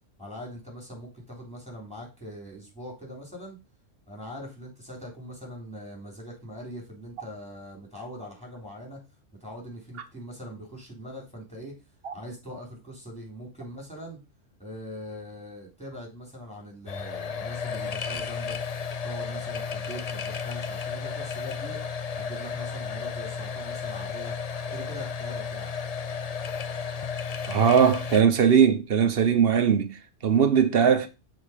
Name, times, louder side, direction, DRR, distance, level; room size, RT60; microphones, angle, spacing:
voice 1, 0.2-3.6 4.1-9.0 9.4-11.8 12.1-14.2 14.6-18.6 19.0-21.8 22.2-24.4 24.7-25.7, equal, 5° left, 3.5 m, -42 dB
sound 1, 16.9-28.2, left 6 dB, 50° left, 0.5 m, -33 dB
voice 2, 27.5-31.1, right 7 dB, 55° right, 1.1 m, -20 dB
6.5 x 4.4 x 5.1 m
omnidirectional pair, 1.3 m